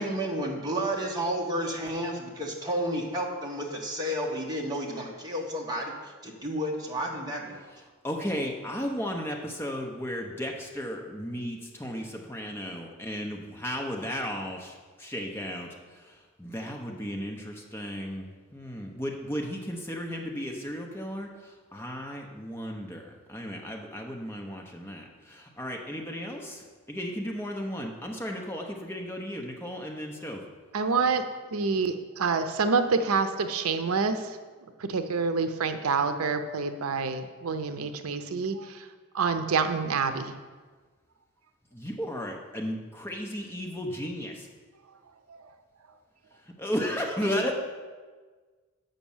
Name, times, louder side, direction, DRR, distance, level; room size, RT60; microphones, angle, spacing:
voice 1, 0.0-7.7, equal, 20° right, -1 dB, 1.2 m, -31 dB
voice 2, 8.0-15.7 16.0-30.4 41.7-44.5 46.6-47.5, equal, 10° left, 1 dB, 0.7 m, -34 dB
voice 3, 30.7-34.4 34.8-38.9 39.1-40.4 45.3-45.4, right 4 dB, 85° right, 9 dB, 0.6 m, -27 dB
7.3 x 5.3 x 7.1 m, 1.4 s
head